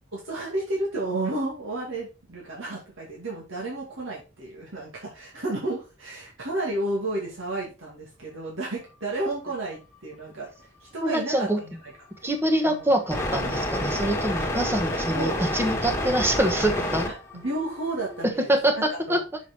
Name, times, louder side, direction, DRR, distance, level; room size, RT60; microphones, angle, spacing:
voice 1, 0.1-10.5 10.9-11.8 12.6-12.9 15.1-15.4 17.3-19.2, right 2 dB, 90° right, -4 dB, 2.2 m, -32 dB
voice 2, 11.0-11.6 12.2-17.1 18.5-19.2, right 1 dB, 10° right, 5 dB, 1.1 m, -25 dB
sound 1, 13.1-18.3, left 1 dB, 15° left, 1.6 m, -29 dB
6.3 x 5.9 x 4.3 m, 0.31 s
head